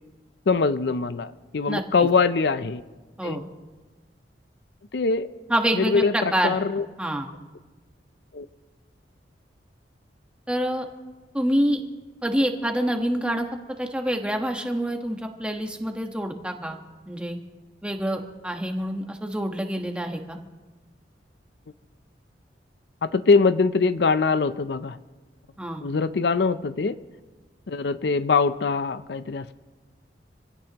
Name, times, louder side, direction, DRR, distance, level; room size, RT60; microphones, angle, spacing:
voice 1, 0.5-2.8 3.2-3.5 4.9-5.3 5.7-6.8 8.3-8.5 23.0-25.0 25.8-27.0 27.7-29.5, left 4 dB, 65° left, 13 dB, 0.5 m, -23 dB
voice 2, 5.5-6.6 7.0-7.3 10.5-10.9 11.3-11.8 12.2-13.5 13.8-16.8 17.1-17.4 17.8-20.4 25.6-25.8, equal, 5° right, 3 dB, 1.3 m, -26 dB
27.0 x 16.5 x 3.0 m, 1.2 s
head